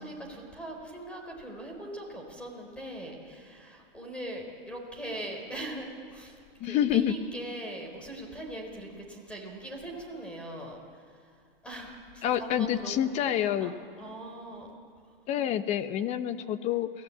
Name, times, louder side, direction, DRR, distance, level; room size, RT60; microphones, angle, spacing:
voice 1, 0.0-11.4 11.6-14.7, right 1 dB, 5° left, 1 dB, 4.3 m, -41 dB
voice 2, 6.6-7.1 12.2-13.7 15.3-16.9, left 10 dB, 25° left, 12 dB, 0.9 m, -27 dB
29.0 x 17.0 x 8.7 m, 2.2 s
hypercardioid pair, 155°, 29 cm